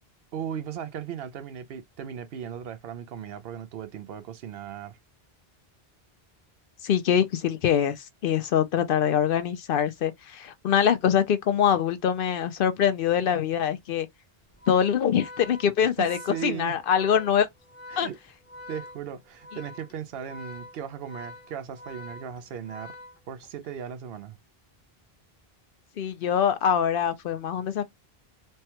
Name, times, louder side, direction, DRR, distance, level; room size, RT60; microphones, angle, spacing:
voice 1, 0.3-5.0 15.8-16.8 17.9-18.2 18.7-23.0 23.3-24.4, right 9 dB, 75° right, 0.8 m, -37 dB
voice 2, 6.8-14.1 14.7-17.5 18.0-18.1 26.0-27.8, left 8 dB, 65° left, 0.7 m, -24 dB
Organ, 14.5-23.7, left 2 dB, 15° left, 0.6 m, -45 dB
3.3 x 2.1 x 2.8 m
omnidirectional pair, 1.0 m